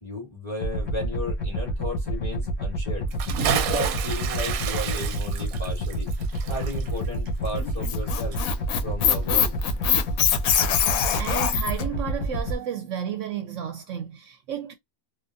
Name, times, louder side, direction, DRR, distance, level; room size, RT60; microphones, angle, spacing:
voice 1, 0.0-3.1 3.5-6.1 6.5-8.4 8.8-9.6, left 1 dB, 20° left, 1.9 m, -34 dB
sound 1, 0.6-12.6, right 1 dB, 60° left, 1.5 m, -28 dB
Bathtub (filling or washing) / Splash splatter, 3.1-8.1 8.3-8.4, right 9 dB, 90° right, 1.1 m, -30 dB
Squeak, 7.6-11.8, left 9 dB, 80° left, 1.1 m, -23 dB
voice 2, 11.1-14.7, right 8 dB, 70° right, 0.9 m, -32 dB
3.7 x 2.4 x 2.5 m
omnidirectional pair, 1.5 m